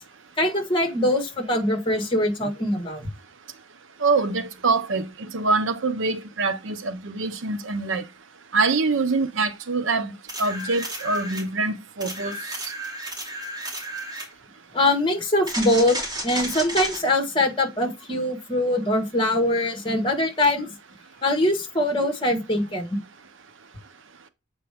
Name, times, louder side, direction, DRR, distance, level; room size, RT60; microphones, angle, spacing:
voice 1, 0.4-3.1 14.7-16.0 16.2-20.7 21.2-23.0, left 1 dB, 25° left, 1.7 m, -23 dB
voice 2, 4.0-8.0 8.5-10.1 10.4-12.4, right 3 dB, 70° right, 0.7 m, -24 dB
sound 1, 10.3-11.5 12.0-14.3 15.5-17.0 20.4-20.5, right 1 dB, 20° right, 2.8 m, -32 dB
7.8 x 4.6 x 3.5 m
head